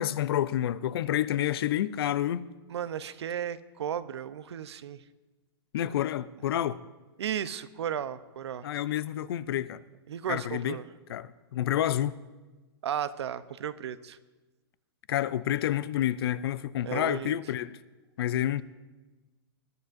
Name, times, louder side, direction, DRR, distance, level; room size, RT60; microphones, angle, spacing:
voice 1, 0.0-2.5 5.7-6.8 8.6-9.8 10.3-10.8 11.1-12.2 15.1-17.8 18.2-18.6, left 12 dB, 60° left, 0.5 m, -29 dB
voice 2, 2.7-5.0 7.2-8.7 10.1-10.9 12.8-14.2 16.8-17.4, right 9 dB, 75° right, 0.7 m, -34 dB
21.0 x 11.5 x 2.6 m
hypercardioid pair, 135°, 14 cm